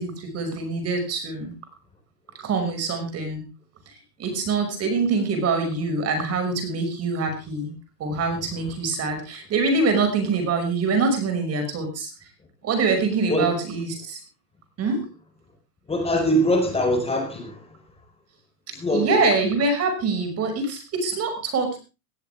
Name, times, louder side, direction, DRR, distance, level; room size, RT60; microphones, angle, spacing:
voice 1, 0.0-1.5 2.3-3.4 4.2-7.7 8.0-12.1 12.6-14.2 14.8-15.1 18.7-21.8, right 3 dB, 30° right, 7 dB, 5.9 m, -24 dB
voice 2, 15.9-17.6 18.7-19.2, equal, 10° left, 5 dB, 4.6 m, -22 dB
18.0 x 15.0 x 3.4 m, 0.30 s
hypercardioid pair, 120°, 49 cm